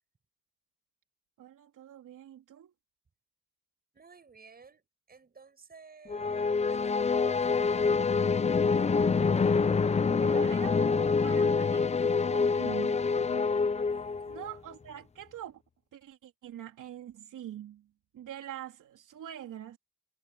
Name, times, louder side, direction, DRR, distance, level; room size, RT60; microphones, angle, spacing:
voice 1, 1.4-2.7 10.2-13.5 14.3-15.6 15.9-17.9 18.1-19.8, right 11 dB, 70° right, 3.4 m, -44 dB
voice 2, 3.9-9.6 13.9-14.5, right 5 dB, 30° right, 6.7 m, -56 dB
sound 1, 6.1-14.5, left 5 dB, 20° left, 0.6 m, -26 dB
cardioid pair, 130°, 32 cm